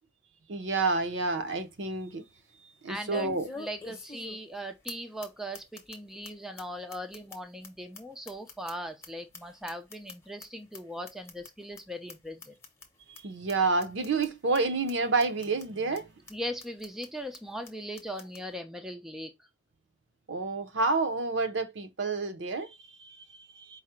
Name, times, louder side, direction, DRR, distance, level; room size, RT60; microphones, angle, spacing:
voice 1, 0.5-2.2 2.8-3.5 13.1-16.1 20.3-23.8, right 3 dB, 60° right, 0.6 m, -29 dB
sound 1, 0.8-0.9 1.3-1.4 3.1-4.6 4.9-5.0 5.2-5.3 5.5-6.0 6.2-6.3 6.6-6.7 6.9-9.1 9.3-10.4 10.7-10.8 11.1-11.5 11.8-11.9 12.1-12.2 12.4-12.9 13.1-13.2 13.5-13.6 13.8-14.3 14.5-14.6 14.9-15.0 15.2-15.6 15.9-16.0 16.3-16.4 16.6-17.1 17.3-17.4 17.6-17.7 18.0-18.4, left 3 dB, 15° left, 0.8 m, -44 dB
voice 2, 2.9-12.5 16.3-19.3, equal, ahead, 0.4 m, -39 dB
4.7 x 2.1 x 4.3 m
head